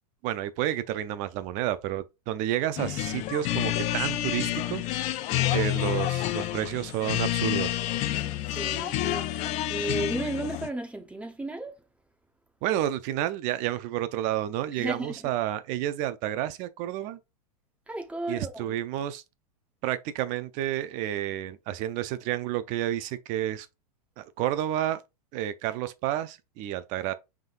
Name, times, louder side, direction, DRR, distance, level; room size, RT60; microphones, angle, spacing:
voice 1, 0.2-5.1 5.5-7.8 12.6-17.2 18.3-19.2 19.8-23.7 24.2-25.0 25.3-27.1, right 12 dB, 40° right, 0.6 m, -30 dB
sound 1, 2.8-10.7, left 14 dB, 35° left, 0.5 m, -29 dB
voice 2, 8.5-11.7 14.8-15.3 17.9-18.8, right 2 dB, 5° right, 1.0 m, -34 dB
5.4 x 3.6 x 2.5 m
hypercardioid pair, 125°, 20 cm